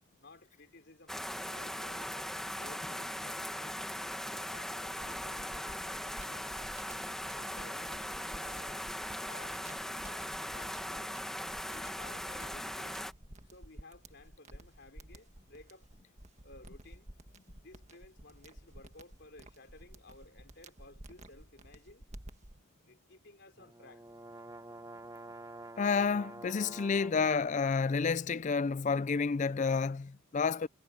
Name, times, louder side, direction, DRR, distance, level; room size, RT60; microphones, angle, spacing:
voice 1, 0.2-3.8 4.3-6.8 7.3-8.9 9.3-11.2 11.7-13.0 13.4-15.9 16.4-17.1 17.6-22.0 22.8-24.1, left 2 dB, 55° left, 4.2 m, -56 dB
sound 1, 1.1-13.1, equal, ahead, 1.3 m, -39 dB
sound 2, 4.8-22.6, right 1 dB, 35° right, 1.7 m, -53 dB
sound 3, 23.6-27.5, right 2 dB, 15° right, 1.2 m, -48 dB
voice 2, 25.8-30.7, left 5 dB, 35° left, 0.4 m, -30 dB
head